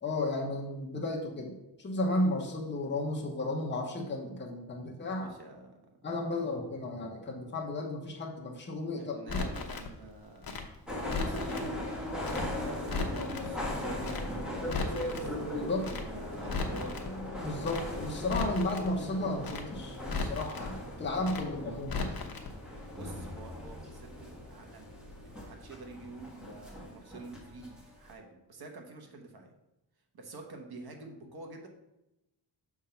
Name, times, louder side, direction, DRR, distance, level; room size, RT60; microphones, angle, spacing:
voice 1, 0.0-1.5 1.8-5.3 6.0-9.4 15.6-15.9 17.4-22.2, left 2 dB, 25° left, -2 dB, 1.0 m, -33 dB
voice 2, 5.2-5.9 8.9-10.5 11.0-11.9 12.1-17.0 22.9-24.9 25.2-29.5 30.1-31.7, right 3 dB, 60° right, 3 dB, 1.3 m, -47 dB
Crackle, 9.3-9.9 10.4-11.7 12.2-12.5 12.7-13.5 14.0-14.3 14.5-15.3 15.8-16.1 16.4-17.1 17.6-17.9 18.2-18.9 19.4-19.7 20.0-20.7 21.2-21.5 21.8-22.5 22.8-22.9, left 4 dB, 55° left, 0.9 m, -36 dB
sound 1, 10.9-28.1, left 1 dB, ahead, 1.4 m, -39 dB
6.5 x 3.7 x 5.7 m, 0.92 s
wide cardioid pair, 140°, 42 cm